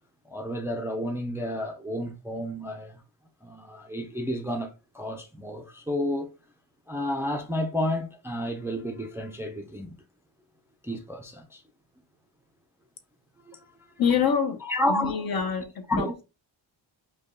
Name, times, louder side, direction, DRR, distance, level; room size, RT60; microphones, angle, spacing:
voice 1, 0.3-3.0 3.4-6.3 6.9-9.9 10.8-11.6 13.5-13.6 14.6-15.2 15.9-16.1, left 1 dB, 5° right, 0.5 m, -31 dB
voice 2, 14.0-14.6 14.9-16.2, left 7 dB, 50° left, 0.8 m, -26 dB
5.2 x 2.3 x 3.6 m
wide cardioid pair, 135°, 47 cm